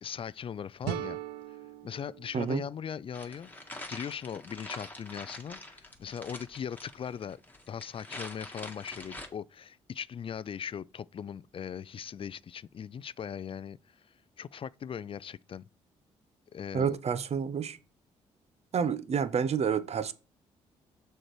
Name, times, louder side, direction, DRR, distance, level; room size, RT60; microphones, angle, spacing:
voice 1, 0.0-1.2 1.8-7.4 7.7-13.9 14.4-15.6 16.5-17.0, left 8 dB, 40° left, 0.3 m, -39 dB
sound 1, 0.8-3.7, right 12 dB, 90° right, 0.6 m, -40 dB
sound 2, 3.1-9.3, left 2 dB, 10° left, 1.8 m, -45 dB
voice 2, 16.7-17.8 18.7-20.1, right 6 dB, 50° right, 0.7 m, -29 dB
6.3 x 4.5 x 4.7 m
hypercardioid pair, 50°, 14 cm